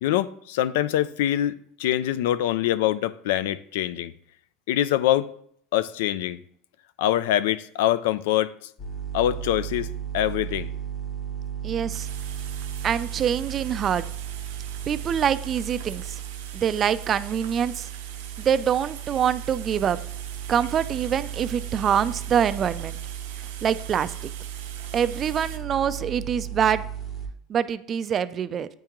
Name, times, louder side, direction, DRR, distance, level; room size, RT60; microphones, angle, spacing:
voice 1, 0.0-4.1 4.7-5.3 5.7-6.4 7.0-8.5 9.1-9.9 10.1-10.7, left 13 dB, 85° left, 0.3 m, -24 dB
sound 1, 8.8-27.3, right 10 dB, 35° left, 1.0 m, -35 dB
voice 2, 11.6-12.1 12.8-14.0 14.9-16.2 16.5-17.9 18.4-20.0 20.5-23.0 23.6-24.3 24.9-26.9 27.5-28.7, right 8 dB, 35° right, 0.3 m, -25 dB
sound 2, 11.9-25.6, right 10 dB, 90° right, 0.6 m, -43 dB
8.8 x 3.6 x 3.0 m
supercardioid pair, 125°, 0 cm